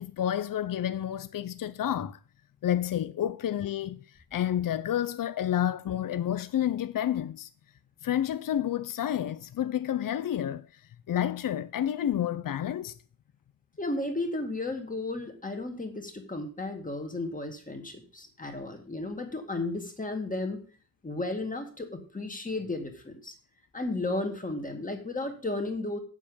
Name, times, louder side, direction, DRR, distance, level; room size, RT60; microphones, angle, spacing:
voice 1, 0.0-2.2 2.6-4.0 4.3-7.5 8.0-10.8 11.1-12.9, left 10 dB, 70° left, 0.6 m, -30 dB
voice 2, 13.8-20.6 21.0-23.4 23.7-26.0, left 2 dB, 25° left, 2.2 m, -34 dB
8.5 x 7.3 x 7.2 m
wide cardioid pair, 145°, 34 cm